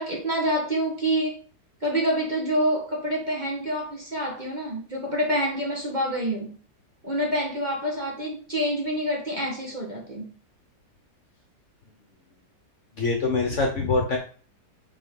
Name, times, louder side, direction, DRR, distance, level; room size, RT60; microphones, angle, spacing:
voice 1, 0.0-1.4 1.8-6.6 7.0-10.3, equal, 30° right, -1 dB, 1.3 m, -27 dB
voice 2, 12.9-14.2, left 3 dB, 50° left, 2 dB, 1.1 m, -24 dB
5.7 x 4.5 x 3.8 m, 0.41 s
omnidirectional pair, 1.9 m